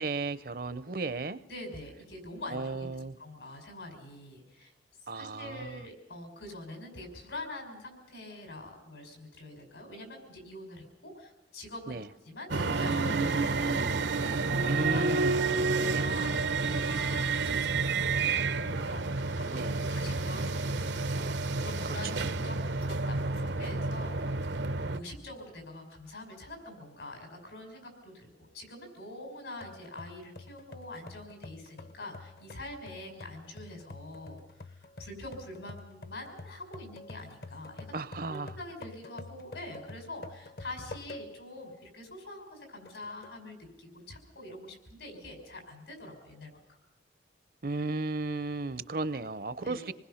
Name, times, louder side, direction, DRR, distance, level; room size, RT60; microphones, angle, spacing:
voice 1, 0.0-1.4 2.5-3.1 5.1-5.8 11.9-12.1 14.7-15.4 15.8-16.1 19.5-19.8 21.8-22.3 37.9-38.5 47.6-49.9, right 3 dB, 55° right, 0.6 m, -34 dB
voice 2, 1.5-2.9 3.2-4.7 5.1-12.0 12.2-15.2 15.5-24.2 24.8-37.9 38.3-46.6 49.6-49.9, left 1 dB, 85° left, 5.6 m, -45 dB
sound 1, 12.5-25.0, right 3 dB, 85° right, 0.9 m, -30 dB
sound 2, 29.6-41.5 42.0-42.1 42.9-43.4, left 2 dB, 60° left, 0.9 m, -48 dB
26.5 x 20.0 x 5.7 m
head